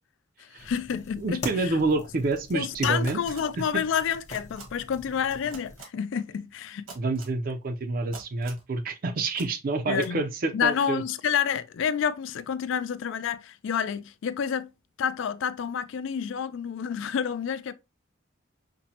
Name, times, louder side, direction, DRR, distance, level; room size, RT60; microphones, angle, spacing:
voice 1, 0.4-1.7 2.5-6.9 9.9-10.2 10.5-14.7 15.0-17.7, left 7 dB, 65° left, 0.3 m, -29 dB
sound 1, 0.6-5.8, left 3 dB, 35° left, 1.0 m, -41 dB
voice 2, 1.2-3.2 3.6-3.7 7.0-11.0, right 3 dB, 45° right, 0.4 m, -28 dB
sound 2, 3.0-3.4 4.3-4.6 5.5-5.8 6.9-7.3 8.1-8.6 9.3-9.5 9.9-10.1, right 4 dB, 90° right, 1.4 m, -44 dB
5.8 x 2.1 x 2.7 m
head